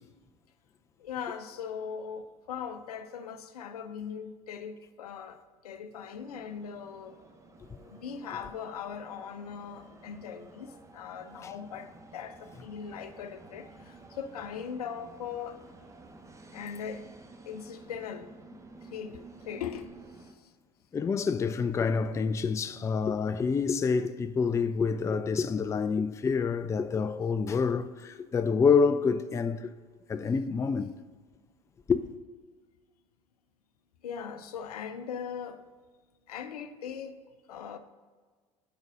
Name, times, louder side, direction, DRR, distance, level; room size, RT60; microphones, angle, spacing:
voice 1, 1.0-7.2 7.8-15.6 16.5-17.1 17.5-19.9 20.1-20.5 34.0-35.6 36.3-37.2 37.5-37.8, left 7 dB, 75° left, 0.5 m, -40 dB
sound 1, 6.1-20.3, right 3 dB, 15° right, 0.8 m, -52 dB
voice 2, 20.9-29.7 30.1-30.9 31.9-32.0, left 5 dB, 15° left, 0.3 m, -27 dB
6.3 x 5.1 x 4.7 m
figure-of-eight pair, 65°, 20 cm